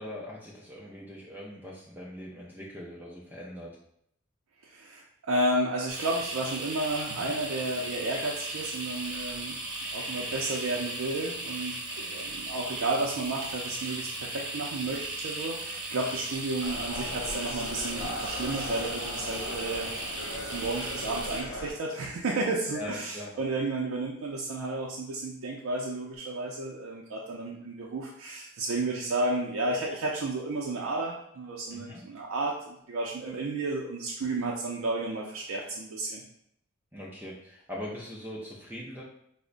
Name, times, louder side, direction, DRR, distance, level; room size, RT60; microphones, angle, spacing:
voice 1, 0.0-3.7 22.7-23.3 31.7-32.0 36.9-39.0, left 1 dB, 10° right, -5 dB, 0.4 m, -41 dB
voice 2, 4.6-9.6 9.9-20.1 20.4-36.2, right 2 dB, 80° right, -3 dB, 0.4 m, -32 dB
sound 1, 5.9-21.4, right 2 dB, 40° right, 0.9 m, -37 dB
sound 2, 16.6-21.7, left 2 dB, 80° left, 0.5 m, -38 dB
4.9 x 2.1 x 2.5 m, 0.72 s
head